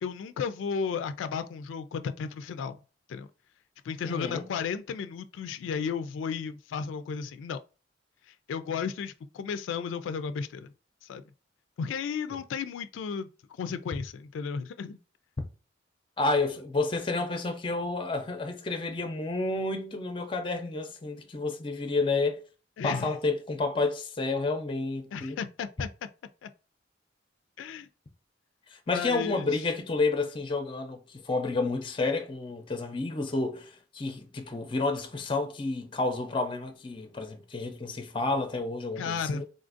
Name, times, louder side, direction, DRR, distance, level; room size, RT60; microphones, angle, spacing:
voice 1, 0.0-2.8 3.1-3.3 3.8-7.6 8.3-10.7 11.0-11.2 11.8-13.3 13.6-15.0 22.8-23.1 25.1-25.9 26.4-26.5 27.6-27.9 28.9-29.6 39.0-39.4, left 6 dB, 85° left, 0.3 m, -34 dB
voice 2, 4.0-4.4 12.3-12.4 16.2-22.4 22.8-25.4 28.7-39.4, left 3 dB, 25° left, 0.5 m, -30 dB
3.8 x 2.5 x 2.4 m
head